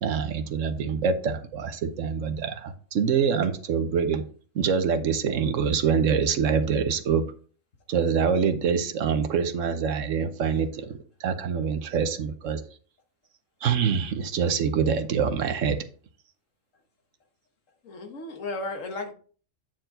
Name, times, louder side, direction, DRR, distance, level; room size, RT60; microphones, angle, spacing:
voice 1, 0.0-4.2 4.5-7.2 7.9-12.6 13.6-15.8, right 6 dB, 75° right, 1.2 m, -25 dB
voice 2, 17.8-19.1, left 2 dB, 75° left, 1.7 m, -34 dB
9.0 x 4.6 x 3.8 m
omnidirectional pair, 1.3 m